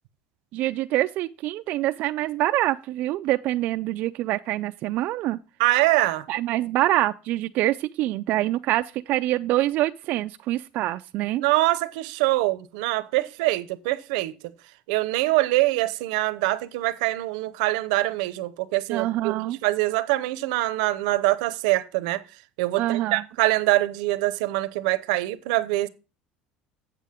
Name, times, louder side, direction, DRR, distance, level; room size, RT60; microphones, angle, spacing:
voice 1, 0.5-5.4 6.3-11.4 18.9-19.6 22.8-23.2, right 15 dB, 55° right, 0.3 m, -25 dB
voice 2, 5.6-6.3 11.4-14.4 14.9-22.2 22.6-25.9, right 18 dB, 90° right, 0.7 m, -24 dB
8.1 x 7.6 x 3.6 m
cardioid pair, 140°, 4 cm